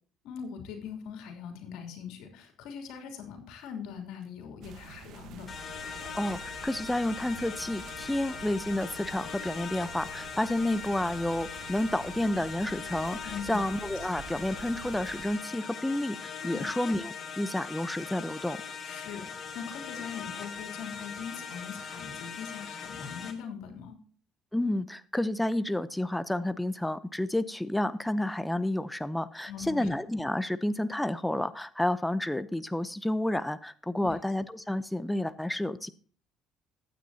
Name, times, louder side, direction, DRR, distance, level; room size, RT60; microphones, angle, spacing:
voice 1, 0.2-5.5 13.2-13.6 16.4-16.7 18.8-24.0 29.5-29.9 34.0-34.1, left 7 dB, 80° left, 4 dB, 3.0 m, -41 dB
sound 1, 4.6-15.3, right 8 dB, 65° right, 1.2 m, -48 dB
sound 2, 5.5-23.3, left 6 dB, 40° left, 2.3 m, -41 dB
voice 2, 6.1-18.6 24.5-35.9, left 1 dB, 5° left, 14 dB, 0.7 m, -30 dB
14.5 x 9.3 x 2.8 m, 0.43 s
cardioid pair, 95°, 0 cm